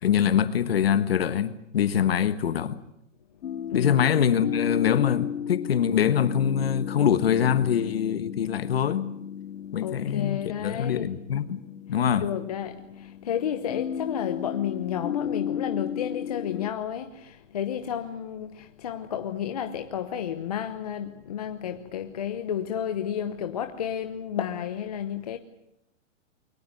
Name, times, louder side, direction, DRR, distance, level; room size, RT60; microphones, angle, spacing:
voice 1, 0.0-2.8 3.7-9.1 9.7-11.6 11.9-12.3, left 8 dB, 50° left, 1.5 m, -24 dB
sound 1, 3.4-16.7, left 9 dB, 75° left, 0.9 m, -34 dB
voice 2, 3.7-4.0 9.8-11.1 12.2-25.4, left 9 dB, 30° left, 1.0 m, -31 dB
22.5 x 19.5 x 9.2 m
hypercardioid pair, 180°, 38 cm